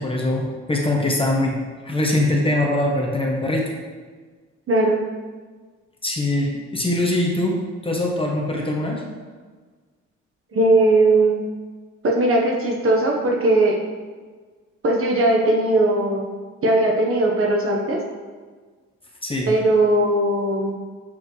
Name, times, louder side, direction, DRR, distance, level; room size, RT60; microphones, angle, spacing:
voice 1, 0.0-1.5 1.8-3.7 6.0-7.6 7.8-9.0 19.2-19.5, left 1 dB, 20° left, -1 dB, 1.1 m, -22 dB
voice 2, 4.7-5.0 10.5-11.4 12.0-13.8 14.8-16.3 16.6-18.0 19.5-20.7, right 2 dB, 45° right, -1 dB, 1.2 m, -18 dB
7.2 x 4.3 x 3.3 m, 1.4 s
cardioid pair, 90°, 30 cm